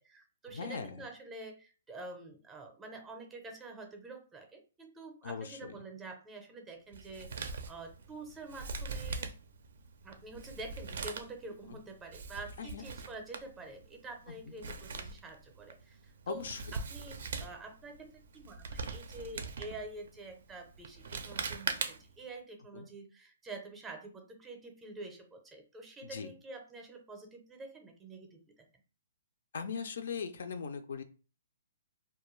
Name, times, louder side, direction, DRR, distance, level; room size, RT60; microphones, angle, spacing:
voice 1, 0.0-9.3 10.0-28.7, right 2 dB, 10° right, 3 dB, 0.5 m, -47 dB
voice 2, 0.5-1.0 5.2-5.8 11.7-11.8 12.6-12.8 14.5-14.6 16.3-16.8 22.7-22.9 26.0-26.3 29.5-31.0, left 6 dB, 70° left, 8 dB, 0.4 m, -40 dB
Male speech man speaking, 6.9-22.2, right 4 dB, 70° right, 0.4 m, -42 dB
2.3 x 2.1 x 3.0 m, 0.35 s
hypercardioid pair, 145°, 0 cm